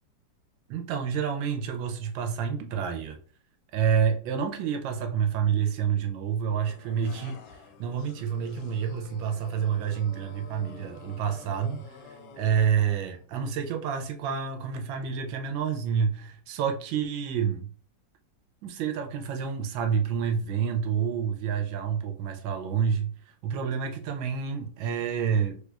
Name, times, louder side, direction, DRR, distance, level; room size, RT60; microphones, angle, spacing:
voice 1, 0.7-3.2 3.7-7.4 7.8-12.0 12.4-17.7 18.6-23.1 23.4-25.6, right 7 dB, 90° right, 1.4 m, -28 dB
sound 1, 6.6-13.3, left 6 dB, 70° left, 1.1 m, -48 dB
3.2 x 3.2 x 2.3 m
omnidirectional pair, 2.0 m